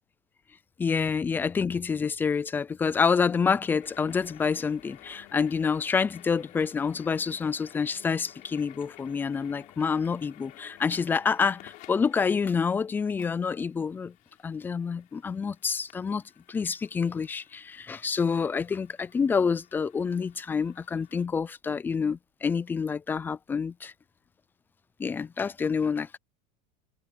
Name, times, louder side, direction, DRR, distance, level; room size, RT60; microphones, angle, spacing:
voice 1, 0.8-14.1 14.4-16.2 16.5-23.9 25.0-26.2, left 5 dB, 10° left, 0.4 m, -27 dB
sound 1, 3.8-21.2, left 17 dB, 45° left, 3.9 m, -54 dB
supercardioid pair, 160°, 19 cm